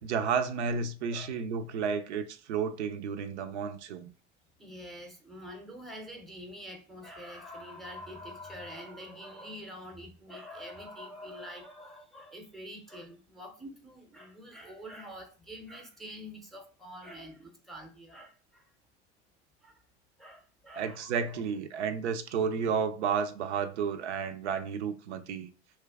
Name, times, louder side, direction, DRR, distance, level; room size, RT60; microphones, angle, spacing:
voice 1, 0.0-4.1 20.8-25.5, right 6 dB, 80° right, 0.5 m, -32 dB
voice 2, 4.6-18.7 19.6-19.8 20.2-21.4, equal, ahead, 0.6 m, -46 dB
3.0 x 2.3 x 3.3 m
hypercardioid pair, 80°, 34 cm